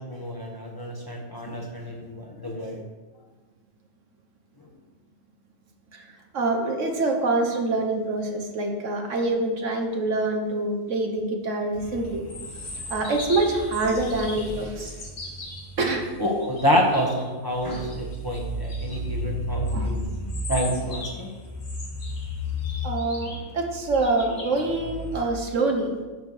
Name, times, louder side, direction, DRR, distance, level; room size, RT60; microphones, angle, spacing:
voice 1, 0.0-2.8 16.2-20.0 20.5-21.3, equal, 20° left, -1 dB, 1.1 m, -27 dB
voice 2, 5.9-12.3 12.6-15.0 15.8-16.0 19.7-19.9 20.2-20.3 22.8-25.9, right 2 dB, 70° right, 3 dB, 1.4 m, -26 dB
sound 1, 11.7-17.2 17.5-25.2, left 1 dB, 80° left, 1.9 m, -33 dB
9.4 x 4.4 x 6.5 m, 1.3 s
omnidirectional pair, 1.4 m